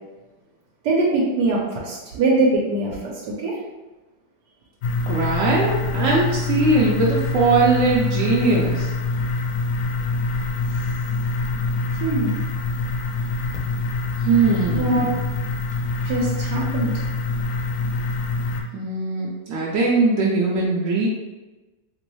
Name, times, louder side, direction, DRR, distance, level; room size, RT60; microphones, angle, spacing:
voice 1, 0.8-3.1 3.4-3.6 12.0-12.3 14.7-15.1 16.0-17.0, right 2 dB, 85° right, -4 dB, 1.3 m, -22 dB
sound 1, 4.8-18.6, left 3 dB, 70° left, 0.9 m, -25 dB
voice 2, 5.1-8.9 14.2-15.2 18.7-21.1, right 3 dB, 70° right, -4 dB, 0.8 m, -20 dB
3.0 x 3.0 x 3.0 m, 1.1 s
omnidirectional pair, 1.8 m